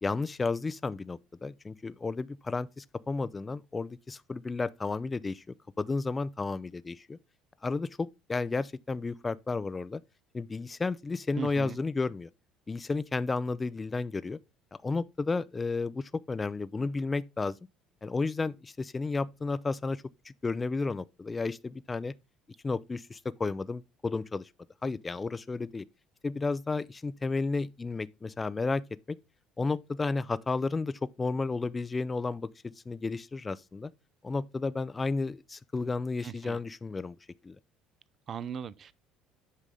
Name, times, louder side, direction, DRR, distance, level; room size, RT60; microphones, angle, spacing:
voice 1, 0.0-5.4 5.8-7.2 7.6-10.0 10.3-12.3 12.7-14.4 14.8-17.6 18.0-22.1 22.6-24.5 24.8-25.8 26.2-29.2 29.6-33.9 34.2-37.2 37.4-37.6, left 3 dB, 20° left, 0.4 m, -32 dB
voice 2, 11.4-11.8 36.2-36.6 38.3-38.9, right 7 dB, 40° right, 0.5 m, -38 dB
8.2 x 5.5 x 3.7 m
supercardioid pair, 100°, 0 cm